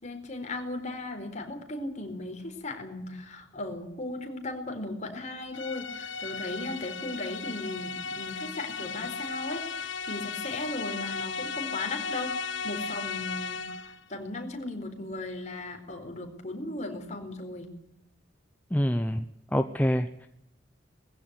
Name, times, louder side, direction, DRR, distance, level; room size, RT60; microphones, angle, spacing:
voice 1, 0.0-17.7, left 2 dB, 40° left, 4 dB, 4.5 m, -37 dB
sound 1, 5.5-14.0, left 5 dB, 80° left, 1.2 m, -36 dB
voice 2, 18.7-19.2 19.5-20.3, equal, 10° left, 7 dB, 0.8 m, -26 dB
21.0 x 15.5 x 9.7 m, 0.83 s
head